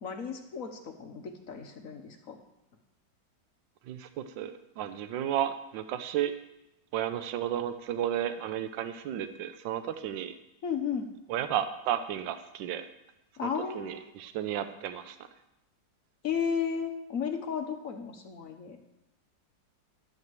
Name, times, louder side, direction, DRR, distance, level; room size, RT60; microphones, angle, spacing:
voice 1, 0.0-2.4 10.6-11.1 13.4-14.0 16.2-18.8, left 7 dB, 50° left, 5 dB, 1.3 m, -34 dB
voice 2, 3.9-6.3 6.9-10.3 11.3-12.9 13.4-15.2, right 10 dB, 80° right, 9 dB, 1.4 m, -33 dB
12.0 x 5.7 x 7.6 m, 0.92 s
omnidirectional pair, 2.0 m